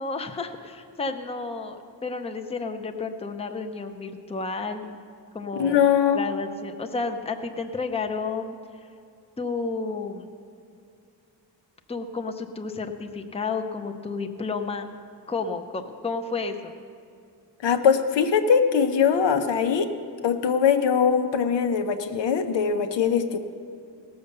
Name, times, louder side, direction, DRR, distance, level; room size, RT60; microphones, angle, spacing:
voice 1, 0.0-5.0 5.3-5.8 6.1-8.6 9.4-10.3 11.9-14.9 15.3-16.8, left 4 dB, 15° left, 5 dB, 0.6 m, -31 dB
voice 2, 5.5-6.2 17.6-19.9 20.2-23.4, left 7 dB, 85° left, 7 dB, 1.0 m, -21 dB
18.0 x 6.9 x 6.7 m, 2.4 s
wide cardioid pair, 155°, 42 cm